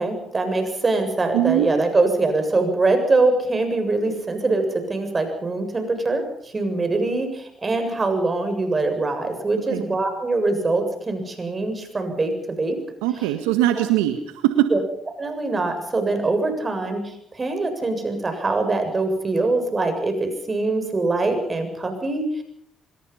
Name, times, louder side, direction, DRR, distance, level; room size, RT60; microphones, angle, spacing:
voice 1, 0.0-12.8 14.7-14.8 15.2-22.4, right 3 dB, 30° right, 6 dB, 7.5 m, -23 dB
voice 2, 1.3-1.7 9.7-9.8 13.0-14.7, right 13 dB, 90° right, 8 dB, 1.6 m, -21 dB
26.5 x 21.5 x 5.8 m, 0.70 s
hypercardioid pair, 55°, 0 cm